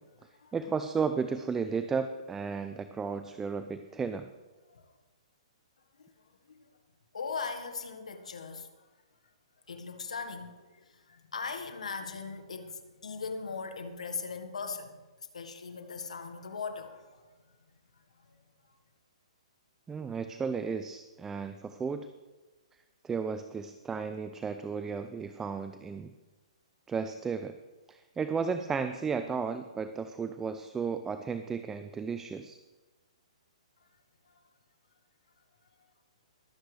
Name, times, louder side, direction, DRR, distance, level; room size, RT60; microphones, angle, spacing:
voice 1, 0.5-4.3 19.9-22.1 23.0-26.1 26.9-27.5 27.9-32.6, right 5 dB, 10° right, 0.4 m, -34 dB
voice 2, 7.1-8.7 9.7-15.0 15.3-17.3, left 5 dB, 85° left, 1.6 m, -39 dB
21.5 x 7.9 x 3.4 m
hypercardioid pair, 140°, 3 cm